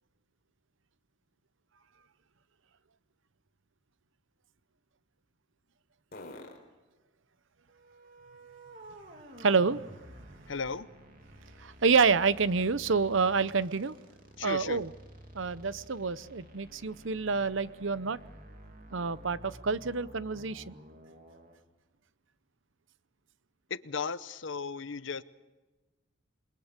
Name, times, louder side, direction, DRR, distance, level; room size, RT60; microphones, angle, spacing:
sound 1, 1.1-10.2 10.6-14.4, left 2 dB, 45° left, 4.1 m, -59 dB
sound 2, 7.7-21.6, right 1 dB, 40° right, 2.8 m, -52 dB
voice 1, 9.4-9.8 11.6-13.9 14.4-14.9 15.3-18.2 18.9-20.7, right 5 dB, 65° right, 0.8 m, -28 dB
voice 2, 10.5-10.9 14.4-14.8 23.7-25.2, left 5 dB, 65° left, 0.8 m, -35 dB
28.5 x 22.0 x 6.7 m
head